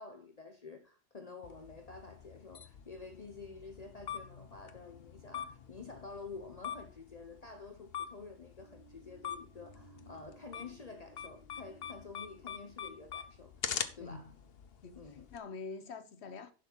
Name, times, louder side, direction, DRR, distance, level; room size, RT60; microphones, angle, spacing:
voice 1, 0.0-14.3 15.0-15.3, left 4 dB, 40° left, 1.0 m, -49 dB
sound 1, 1.4-15.4, left 8 dB, 65° left, 1.0 m, -45 dB
sound 2, 8.5-14.2, right 6 dB, 35° right, 4.8 m, -62 dB
voice 2, 14.0-14.3 14.8-16.5, left 4 dB, 85° left, 1.3 m, -45 dB
11.0 x 6.3 x 4.6 m
omnidirectional pair, 1.1 m